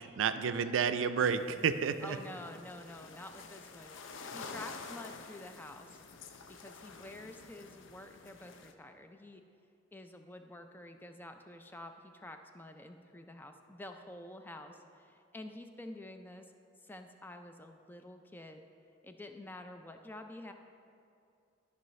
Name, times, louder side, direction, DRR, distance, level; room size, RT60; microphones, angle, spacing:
voice 1, 0.2-2.2, right 6 dB, 80° right, 11 dB, 0.4 m, -30 dB
sound 1, 1.2-8.7, left 4 dB, 75° left, 0.5 m, -49 dB
voice 2, 2.0-6.0 6.5-9.4 9.9-16.4 16.8-18.6 19.0-20.5, left 1 dB, 10° left, 6 dB, 0.4 m, -49 dB
12.0 x 5.5 x 3.1 m, 2.5 s
head